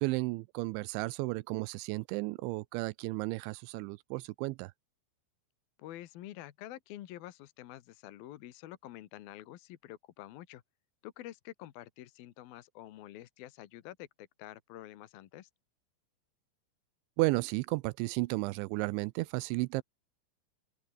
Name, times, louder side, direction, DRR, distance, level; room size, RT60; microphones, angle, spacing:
voice 1, 0.0-4.7 17.2-19.8, right 22 dB, 85° right, 2.8 m, -33 dB
voice 2, 5.8-10.6 11.0-15.5, left 14 dB, 70° left, 2.6 m, -48 dB
open air
omnidirectional pair, 5.4 m